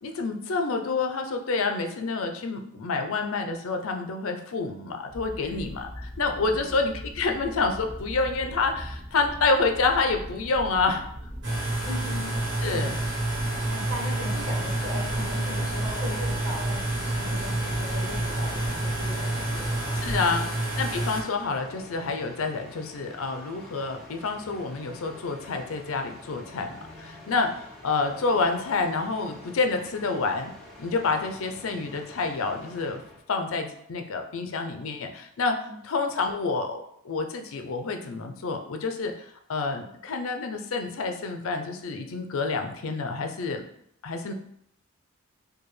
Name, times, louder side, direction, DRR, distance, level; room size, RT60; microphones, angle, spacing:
voice 1, 0.0-11.1 12.6-13.0 19.9-30.5 30.8-33.0 33.3-43.6 44.0-44.3, left 4 dB, 75° left, 5 dB, 0.5 m, -28 dB
sound 1, 5.1-20.2, equal, 20° right, 1.1 m, -40 dB
sound 2, 11.4-21.2, right 2 dB, 50° right, 1.3 m, -28 dB
voice 2, 11.8-12.9 13.7-19.7 20.3-20.5 31.7-31.8 35.6-35.8, left 1 dB, 75° right, -4 dB, 1.4 m, -38 dB
sound 3, 13.3-33.2, left 1 dB, ahead, 0.7 m, -48 dB
4.7 x 2.3 x 3.1 m, 0.73 s
head